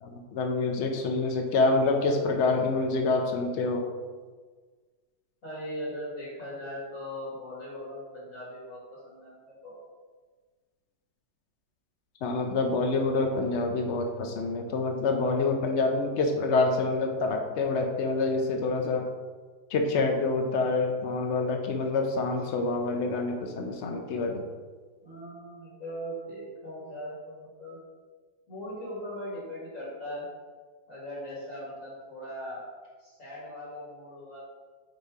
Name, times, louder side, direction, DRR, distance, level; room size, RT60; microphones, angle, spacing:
voice 1, 0.0-3.9 12.2-19.1 19.7-24.5, left 3 dB, 75° left, 3 dB, 0.6 m, -27 dB
voice 2, 5.4-9.7 15.1-15.3 25.0-27.8 28.5-30.3 30.9-32.6 33.0-34.4, equal, 45° left, -7 dB, 1.9 m, -39 dB
5.1 x 4.2 x 4.7 m, 1.4 s
omnidirectional pair, 2.0 m